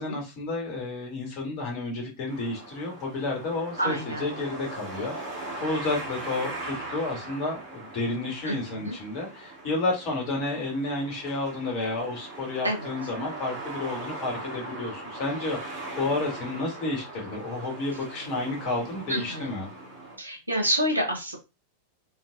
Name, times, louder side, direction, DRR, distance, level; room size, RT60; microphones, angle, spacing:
voice 1, 0.0-19.7, left 2 dB, 40° left, -1 dB, 2.0 m, -31 dB
sound 1, 2.3-20.2, right 2 dB, 30° right, 2.5 m, -40 dB
voice 2, 3.8-4.2 8.4-8.9 12.6-12.9 19.1-19.5 20.2-21.4, equal, 80° right, 0 dB, 1.3 m, -28 dB
4.0 x 3.8 x 2.6 m, 0.27 s
figure-of-eight pair, 90°, 0 cm